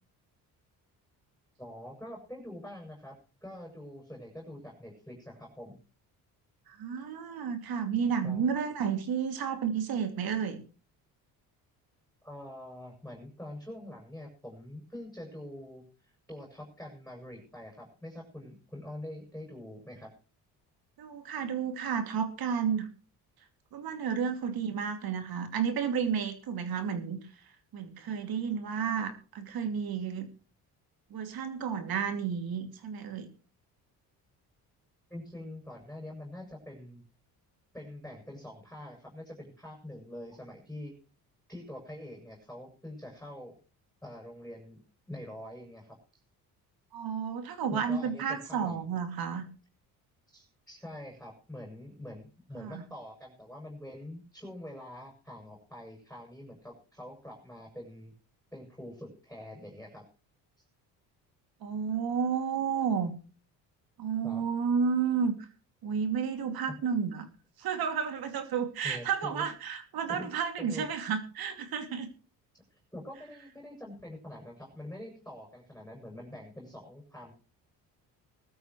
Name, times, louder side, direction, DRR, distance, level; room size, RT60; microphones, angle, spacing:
voice 1, 1.6-3.2 3.4-5.8 8.2-8.4 12.2-20.1 35.1-37.0 37.7-40.9 41.5-43.6 44.0-46.2 47.7-48.8 50.3-58.1 58.5-60.0 60.6-60.7 64.2-64.4 68.8-69.5 70.1-70.3 70.6-70.9 72.5-77.3, left 1 dB, 5° left, 0 dB, 7.2 m, -45 dB
voice 2, 6.7-10.6 21.0-22.9 23.7-27.2 27.7-30.3 31.1-33.3 46.9-49.5 52.6-52.8 61.6-63.1 64.0-65.4 65.8-67.3 67.6-72.1, right 7 dB, 65° right, 7 dB, 2.8 m, -31 dB
20.0 x 13.0 x 3.2 m, 0.36 s
cardioid pair, 85°, 38 cm